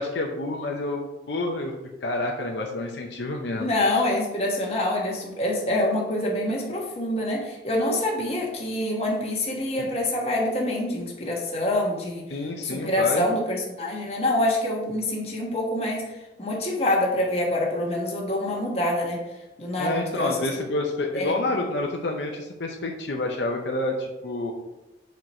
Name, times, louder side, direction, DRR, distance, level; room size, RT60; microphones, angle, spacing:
voice 1, 0.0-1.7 2.0-3.7 9.8-9.9 12.3-13.3 19.8-24.5, left 2 dB, 75° left, 2 dB, 0.7 m, -28 dB
voice 2, 3.6-12.3 12.6-16.1 16.4-19.2 19.6-20.4 21.1-21.3, left 1 dB, 35° left, -1 dB, 1.3 m, -26 dB
4.8 x 4.5 x 5.4 m, 1.0 s
head